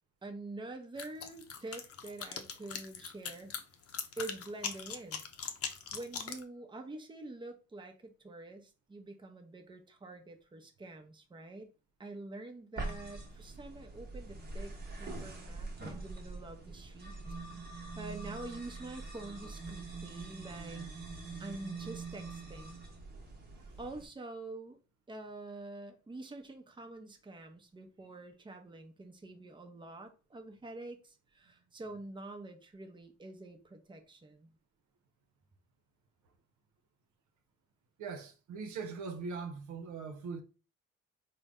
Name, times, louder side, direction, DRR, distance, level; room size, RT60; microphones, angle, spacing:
voice 1, 0.2-3.5 4.2-5.2 5.9-11.7 12.0-17.2 17.6-20.8 21.4-22.8 23.8-24.8 25.1-34.5, right 2 dB, 15° right, 0.7 m, -46 dB
sound 1, 1.0-6.4, left 7 dB, 50° left, 0.7 m, -40 dB
sound 2, 12.8-24.1, right 3 dB, 35° right, 1.0 m, -44 dB
voice 2, 38.0-40.4, right 5 dB, 75° right, 0.8 m, -41 dB
3.8 x 2.2 x 3.6 m
cardioid pair, 90°, 30 cm